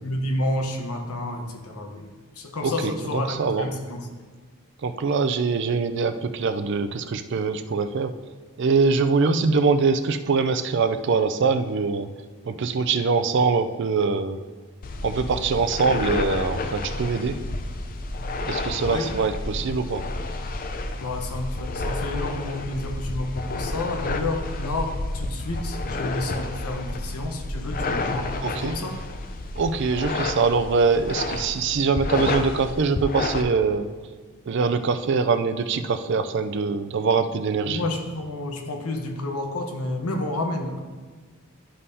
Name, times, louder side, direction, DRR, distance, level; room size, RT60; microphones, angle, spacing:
voice 1, 0.0-2.0 2.4-4.0 18.9-19.1 21.0-29.0 37.7-40.8, left 2 dB, 90° left, 3 dB, 1.0 m, -30 dB
voice 2, 2.6-3.7 4.8-8.1 8.6-12.1 12.5-14.4 15.0-17.4 18.5-20.0 28.4-28.8 29.5-33.9 34.5-37.8, right 4 dB, 55° right, 9 dB, 0.4 m, -23 dB
sound 1, 14.8-33.4, left 2 dB, 40° left, 0.5 m, -30 dB
11.0 x 5.4 x 2.7 m, 1.4 s
head